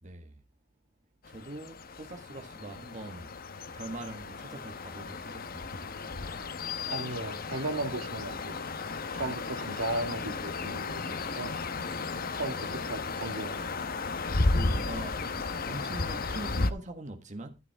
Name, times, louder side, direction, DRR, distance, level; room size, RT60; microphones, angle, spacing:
voice 1, 0.0-0.4 1.3-3.3 3.7-5.9 14.5-15.3 15.7-17.6, right 2 dB, 40° right, 1.5 m, -43 dB
sound 1, 1.2-16.7, left 3 dB, 50° left, 0.9 m, -34 dB
voice 2, 6.9-8.6 9.1-11.5 12.3-13.6, right 2 dB, 85° right, 1.8 m, -36 dB
12.0 x 9.5 x 3.4 m
head